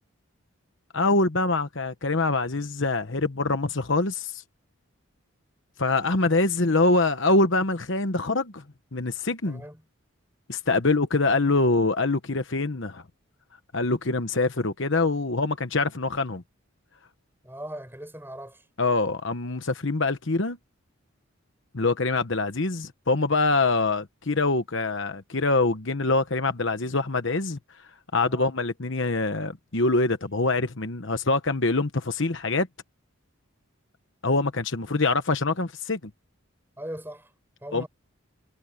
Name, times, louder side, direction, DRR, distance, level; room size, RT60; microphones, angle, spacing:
voice 1, 0.9-4.4 5.8-8.6 8.9-9.6 10.5-13.0 13.7-16.4 18.8-20.6 21.7-27.6 28.1-32.7 34.2-36.0 37.7-37.8, left 3 dB, 60° left, 1.1 m, -24 dB
voice 2, 9.5-9.8 17.4-18.7 28.3-28.5 36.8-37.3 37.6-37.9, right 1 dB, 10° right, 7.9 m, -39 dB
head